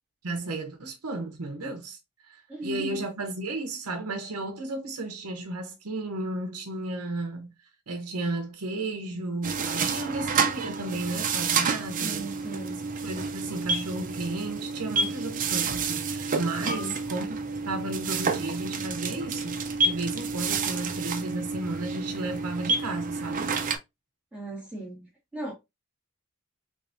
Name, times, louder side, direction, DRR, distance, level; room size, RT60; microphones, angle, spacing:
voice 1, 0.2-2.0 2.2-7.5 7.9-12.3 13.0-17.2 17.6-23.6, right 2 dB, 85° right, 0.8 m, -33 dB
voice 2, 2.5-3.0 12.0-12.8 16.6-17.0 24.3-25.1 25.3-25.5, right 1 dB, 5° right, 1.6 m, -37 dB
sound 1, 9.4-23.8, right 4 dB, 35° right, 0.5 m, -29 dB
3.4 x 3.3 x 2.6 m
head